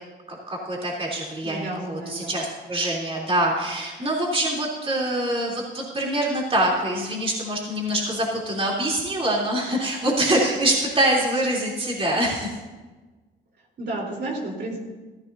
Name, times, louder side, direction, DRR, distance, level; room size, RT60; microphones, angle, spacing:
voice 1, 0.3-12.6, right 1 dB, 30° right, -3 dB, 3.4 m, -25 dB
voice 2, 1.4-2.4 13.8-14.8, right 2 dB, 60° right, -2 dB, 3.9 m, -31 dB
17.0 x 14.0 x 2.8 m, 1.3 s
cardioid pair, 90°, 20 cm